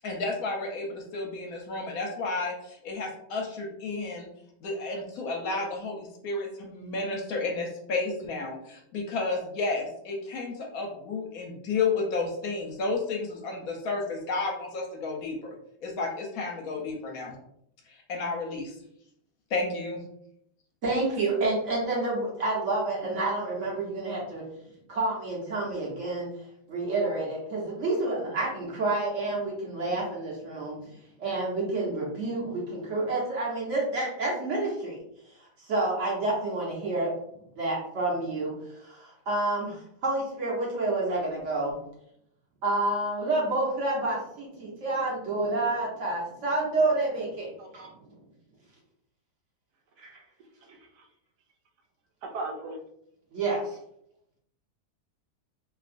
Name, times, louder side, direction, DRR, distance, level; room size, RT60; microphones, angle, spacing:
voice 1, 0.0-4.3 4.6-15.5 15.8-17.4 17.9-18.8 19.5-20.0, left 3 dB, 70° left, 1 dB, 1.0 m, -32 dB
voice 2, 20.8-24.4 24.9-26.3 26.7-30.8 31.2-35.0 35.7-37.1 37.5-38.5 38.8-39.8 40.0-41.7 42.6-47.9 50.0-50.1 53.3-53.8, right 2 dB, 55° right, -4 dB, 1.1 m, -29 dB
voice 3, 50.6-51.0 52.2-52.8, right 2 dB, 80° right, 3 dB, 1.1 m, -37 dB
3.1 x 2.7 x 2.5 m, 0.74 s
omnidirectional pair, 1.7 m